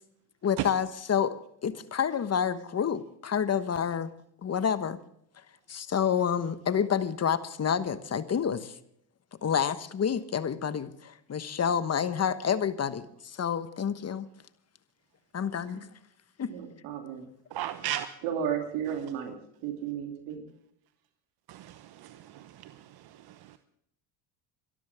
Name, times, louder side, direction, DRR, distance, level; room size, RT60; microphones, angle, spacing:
voice 1, 0.4-1.4 1.6-4.1 4.4-5.0 5.7-8.7 9.4-14.3 15.3-15.8 16.4-16.5, left 7 dB, 30° left, 12 dB, 1.2 m, -28 dB
voice 2, 16.5-17.3 18.2-19.4 19.6-20.5, right 8 dB, 75° right, 3 dB, 2.9 m, -34 dB
voice 3, 17.5-18.1 21.5-23.6, right 13 dB, 50° right, 11 dB, 1.0 m, -36 dB
24.0 x 13.0 x 3.5 m, 0.72 s
supercardioid pair, 75°, 48 cm